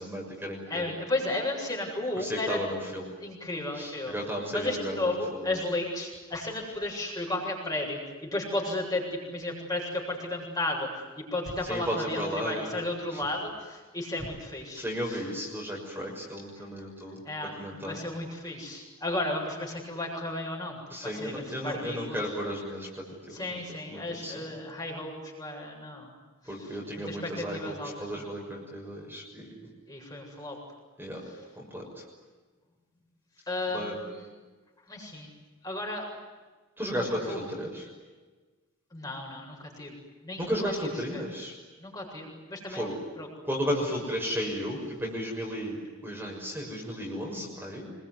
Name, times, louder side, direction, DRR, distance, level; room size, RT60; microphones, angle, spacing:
voice 1, 0.0-0.9 2.2-3.1 3.7-5.5 11.7-12.7 13.1-13.2 14.7-17.2 17.6-18.0 20.9-23.6 23.9-24.3 26.5-29.7 31.0-31.2 31.6-32.0 33.7-34.0 36.8-37.9 40.4-41.5 42.7-43.0 43.4-47.9, equal, 10° right, -1 dB, 6.3 m, -34 dB
voice 2, 0.7-2.6 3.2-4.1 4.5-10.9 11.2-15.2 17.2-17.5 17.8-22.2 23.3-26.1 26.5-26.8 27.0-28.3 29.9-30.6 33.5-34.3 34.9-35.3 35.6-36.1 37.3-37.5 38.9-40.0 40.2-40.7 41.1-41.2 41.8-42.9 43.2-43.3, left 2 dB, 20° left, 0 dB, 7.8 m, -34 dB
27.0 x 23.0 x 9.5 m, 1.3 s
head